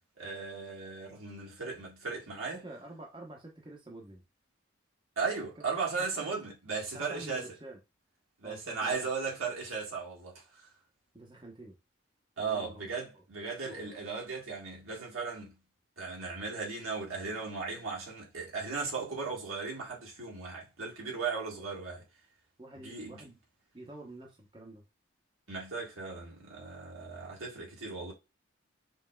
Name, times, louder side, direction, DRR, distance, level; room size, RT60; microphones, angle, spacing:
voice 1, 0.2-2.6 5.2-7.5 8.4-10.7 12.4-15.5 16.0-22.0 22.8-23.3 25.5-28.1, right 4 dB, 85° right, 1.7 m, -37 dB
voice 2, 2.5-4.2 5.6-5.7 5.9-6.4 6.9-7.8 8.4-8.9 11.1-11.8 12.4-12.9 13.6-13.9 22.6-23.4 23.7-24.8, right 2 dB, 25° right, 0.9 m, -48 dB
5.4 x 2.7 x 2.3 m
head